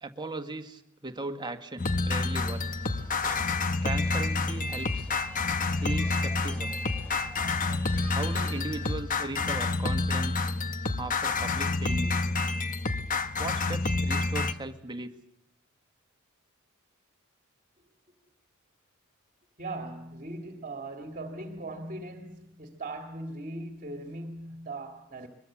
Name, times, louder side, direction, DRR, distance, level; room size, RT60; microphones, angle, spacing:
voice 1, 0.0-2.7 3.8-5.1 5.8-6.7 8.1-10.5 11.0-12.3 13.4-15.2, right 2 dB, 20° right, 1.7 m, -38 dB
sound 1, 1.8-14.5, left 3 dB, 40° left, 1.1 m, -28 dB
sound 2, 2.3-9.0, equal, 10° left, 4.5 m, -46 dB
voice 2, 19.6-25.3, right 2 dB, 40° right, 2.1 m, -39 dB
23.0 x 22.5 x 7.4 m
head